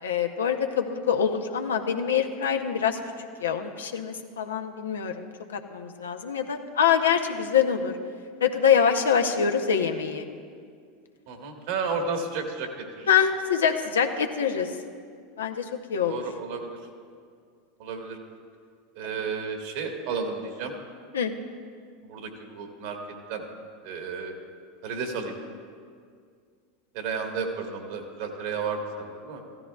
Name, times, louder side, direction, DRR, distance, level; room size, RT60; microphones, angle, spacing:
voice 1, 0.0-3.0 3.4-7.9 8.4-10.3 13.1-14.7 15.4-15.6 15.9-16.2 21.1-21.3, left 7 dB, 80° left, 5 dB, 0.7 m, -25 dB
voice 2, 11.3-13.1 16.0-16.7 17.8-18.2 18.9-20.7 22.0-23.0 23.3-23.4 23.8-24.3 24.8-25.3 26.9-29.4, right 5 dB, 65° right, 3 dB, 1.5 m, -32 dB
15.0 x 13.0 x 2.3 m, 2.1 s
hypercardioid pair, 85°, 0 cm